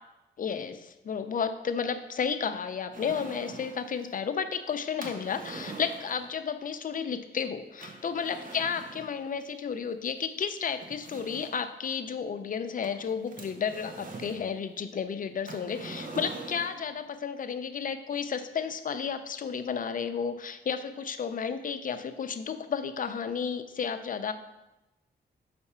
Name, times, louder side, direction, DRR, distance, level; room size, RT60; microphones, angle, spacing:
voice 1, 0.4-24.3, left 6 dB, 45° left, 9 dB, 0.5 m, -32 dB
sound 1, 2.9-3.9 5.0-6.3 7.8-9.1 10.2-10.3 10.8-11.7 12.8-14.5 15.5-16.8, right 3 dB, 45° right, 1.0 m, -43 dB
5.6 x 3.4 x 5.5 m, 0.97 s
cardioid pair, 85°, 19 cm